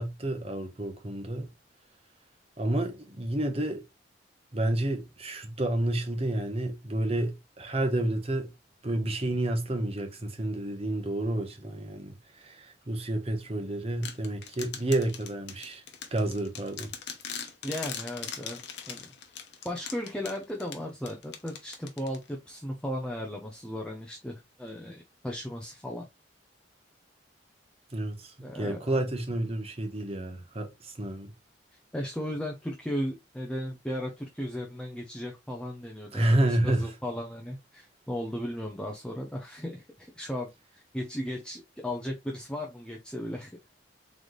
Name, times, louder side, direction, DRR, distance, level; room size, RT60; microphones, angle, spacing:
voice 1, 0.0-1.5 2.6-3.8 4.5-8.5 8.8-15.8 16.1-16.9 27.9-31.3 36.1-36.9, right 1 dB, 30° right, 1.0 m, -30 dB
sound 1, 14.0-22.5, left 7 dB, 60° left, 0.9 m, -41 dB
voice 2, 17.6-19.1 19.6-26.1 28.4-29.0 31.9-43.6, equal, 5° left, 0.6 m, -36 dB
3.9 x 3.4 x 3.1 m
head